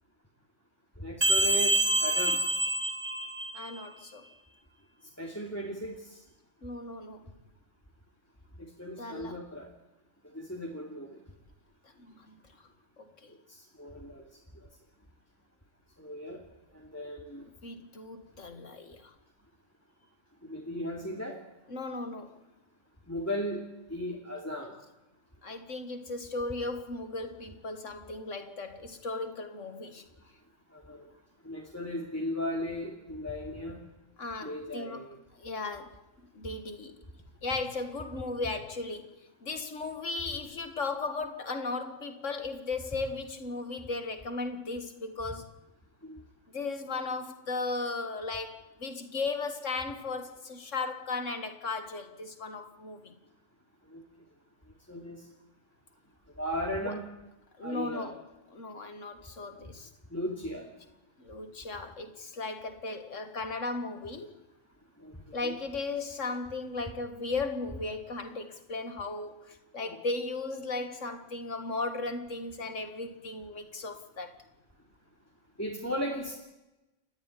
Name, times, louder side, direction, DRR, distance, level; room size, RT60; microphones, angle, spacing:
voice 1, 1.0-2.4 5.2-6.2 8.6-9.7 10.3-11.2 13.5-14.2 16.0-16.4 16.7-17.4 20.5-21.4 23.1-23.6 23.9-24.7 30.7-31.1 31.4-33.8 34.4-35.1 46.0-46.2 53.9-54.0 54.9-55.2 56.4-57.0 57.6-58.1 60.1-60.7 65.0-65.6 69.8-70.0 75.6-76.3, equal, 10° left, 2.8 m, -36 dB
sound 1, 1.2-3.8, right 1 dB, 45° right, 2.2 m, -26 dB
voice 2, 3.5-4.3 6.6-7.3 9.0-9.4 12.0-12.4 13.0-13.3 17.6-19.1 21.7-22.4 25.4-30.1 34.2-35.1 35.4-37.0 37.4-45.6 46.5-53.1 56.8-57.0 57.6-58.2 58.5-59.9 61.2-64.4 65.3-74.4, left 3 dB, 85° left, 2.3 m, -36 dB
29.0 x 14.5 x 10.0 m
omnidirectional pair, 1.2 m